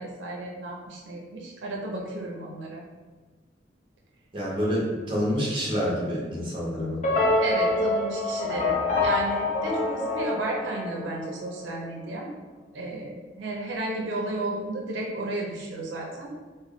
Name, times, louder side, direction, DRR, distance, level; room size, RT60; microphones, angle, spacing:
voice 1, 0.0-2.8 7.4-12.3 12.7-16.3, right 2 dB, 85° right, -1 dB, 0.5 m, -33 dB
voice 2, 4.3-7.0, equal, 30° right, -6 dB, 0.9 m, -27 dB
sound 1, 7.0-11.3, left 2 dB, 40° left, 0.5 m, -26 dB
3.4 x 2.1 x 3.6 m, 1.4 s
head